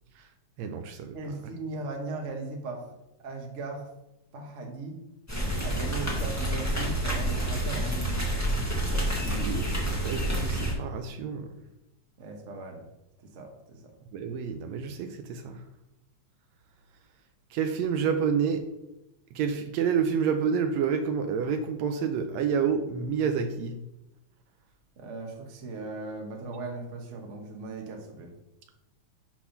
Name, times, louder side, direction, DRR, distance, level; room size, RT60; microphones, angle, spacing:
voice 1, 0.6-1.2 8.9-11.5 14.1-15.6 17.5-18.6 19.4-23.8, right 6 dB, 80° right, 7 dB, 1.7 m, -29 dB
voice 2, 1.1-2.9 3.2-3.9 4.3-5.0 5.6-8.3 12.2-12.9 13.3-13.9 25.0-28.3, right 3 dB, 45° right, 1 dB, 0.9 m, -38 dB
sound 1, 5.3-10.7, right 1 dB, 15° left, 0.6 m, -28 dB
8.4 x 3.5 x 5.8 m, 0.93 s
omnidirectional pair, 3.3 m